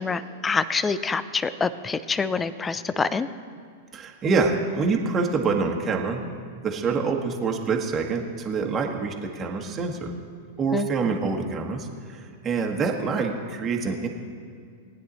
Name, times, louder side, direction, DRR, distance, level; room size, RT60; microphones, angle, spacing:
voice 1, 0.0-3.3 10.7-11.2, left 4 dB, 15° left, 14 dB, 0.6 m, -26 dB
voice 2, 3.9-6.2 6.6-10.1 10.6-14.1, right 4 dB, 25° right, 1 dB, 1.4 m, -26 dB
19.5 x 9.4 x 4.2 m, 2.3 s
figure-of-eight pair, 95°, 0 cm